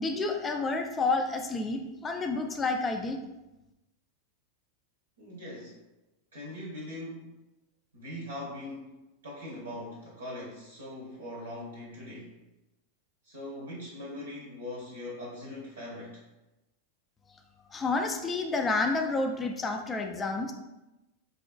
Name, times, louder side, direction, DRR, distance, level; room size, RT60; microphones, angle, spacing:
voice 1, 0.0-3.2 17.7-20.5, left 3 dB, 20° left, 4 dB, 0.3 m, -29 dB
voice 2, 5.2-5.8 6.3-7.4 7.9-8.9 9.2-12.4 13.2-16.2, left 1 dB, 65° right, -3 dB, 0.7 m, -41 dB
3.6 x 2.4 x 2.2 m, 0.99 s
figure-of-eight pair, 90°, 0 cm